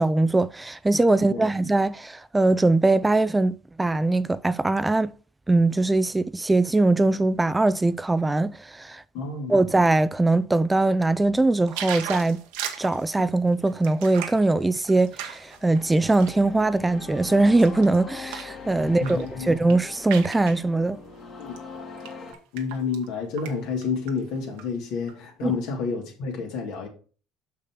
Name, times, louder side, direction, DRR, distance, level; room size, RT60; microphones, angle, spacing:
voice 1, 0.0-5.1 5.5-9.0 9.5-12.4 12.8-21.0 25.4-25.5, right 2 dB, 15° right, 0.4 m, -21 dB
voice 2, 9.1-9.6 18.8-19.5 21.4-21.6 22.5-26.9, left 5 dB, 75° left, 2.6 m, -30 dB
sound 1, 11.7-16.4 16.9-18.6 18.9-19.3 19.5-20.6 21.4-21.6 22.0-23.1 23.4-23.5 23.8-24.6 25.1-25.2, right 9 dB, 80° right, 1.3 m, -37 dB
sound 2, 15.4-22.3, left 5 dB, 45° left, 2.1 m, -42 dB
6.3 x 5.9 x 4.5 m
supercardioid pair, 80°, 0 cm